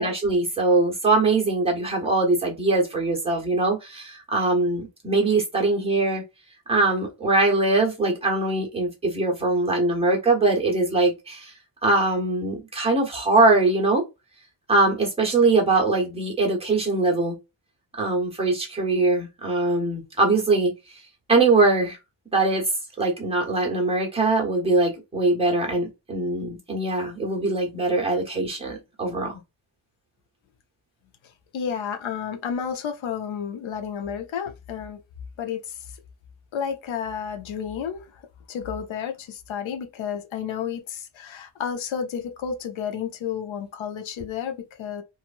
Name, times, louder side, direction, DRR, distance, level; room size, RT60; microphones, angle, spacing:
voice 1, 0.0-6.2 6.7-11.5 11.8-14.0 14.7-17.4 18.0-20.7 21.3-22.0 22.3-22.6 23.0-29.4, right 2 dB, 10° right, 1.1 m, -22 dB
voice 2, 31.5-35.0 35.4-35.8 36.5-38.2 38.5-45.0, left 7 dB, 75° left, 0.7 m, -31 dB
3.0 x 2.5 x 2.5 m
wide cardioid pair, 160°, 48 cm